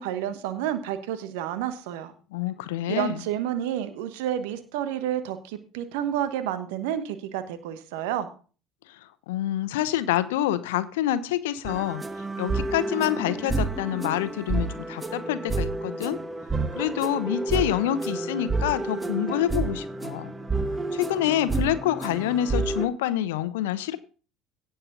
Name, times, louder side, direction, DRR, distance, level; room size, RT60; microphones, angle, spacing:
voice 1, 0.0-2.1 2.9-8.3, right 11 dB, 65° right, 11 dB, 1.3 m, -30 dB
voice 2, 2.3-3.2 9.3-12.0 12.4-16.2 16.8-20.3 20.9-24.0, left 12 dB, 70° left, 14 dB, 0.9 m, -27 dB
sound 1, 11.6-22.9, right 3 dB, 15° right, 1.4 m, -30 dB
17.0 x 6.9 x 4.0 m, 0.38 s
figure-of-eight pair, 60°, 0 cm